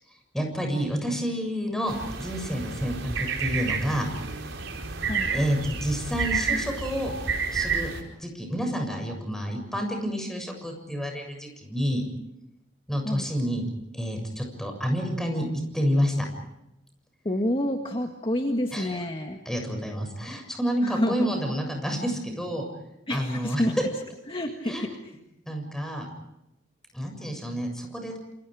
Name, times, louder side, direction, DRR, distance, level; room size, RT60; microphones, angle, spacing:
voice 1, 0.3-3.1 3.4-4.1 5.3-7.1 7.5-7.9 8.2-12.0 12.9-13.6 13.9-15.5 15.7-16.3 18.7-19.1 19.4-22.6 23.1-23.6 24.7-24.9 25.5-26.1 26.9-28.2, equal, 5° left, 3 dB, 7.2 m, -29 dB
sound 1, 1.9-8.0, right 5 dB, 80° right, 4.7 m, -30 dB
voice 2, 17.3-19.4 20.8-21.3 23.1-23.8 24.3-25.1, left 1 dB, 30° left, 3 dB, 1.8 m, -28 dB
29.0 x 28.5 x 5.0 m, 0.88 s
head